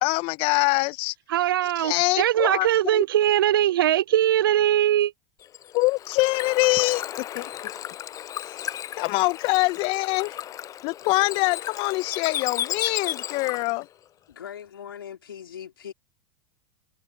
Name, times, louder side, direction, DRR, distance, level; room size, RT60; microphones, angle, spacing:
voice 1, 0.0-1.1 1.8-2.7 2.9-3.0 5.7-7.5 9.0-10.4 10.8-13.9, left 24 dB, 50° left, 0.8 m, -24 dB
voice 2, 1.3-5.1, right 12 dB, 75° right, 0.7 m, -21 dB
Bird / Water, 5.4-13.8, left 11 dB, 30° left, 0.3 m, -34 dB
voice 3, 14.3-15.9, left 9 dB, 85° left, 3.8 m, -40 dB
hypercardioid pair, 90°, 12 cm